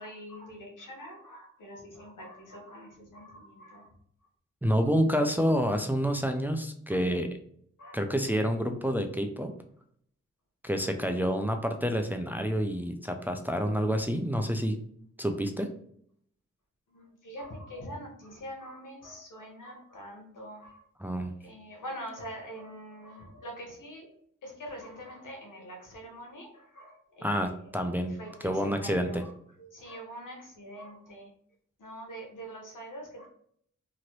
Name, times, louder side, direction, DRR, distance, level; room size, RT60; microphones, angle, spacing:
voice 1, 0.0-3.9 7.8-8.0 16.9-20.8 21.4-24.1 24.4-27.6 28.2-29.3 29.6-31.3 31.8-33.3, equal, 85° left, 1 dB, 0.9 m, -44 dB
voice 2, 4.6-7.3 7.9-9.5 10.6-14.8 15.2-15.7 21.0-21.3 27.2-28.1 28.4-29.2, equal, 5° right, 5 dB, 0.4 m, -28 dB
2.9 x 2.5 x 3.0 m, 0.65 s
cardioid pair, 40°, 31 cm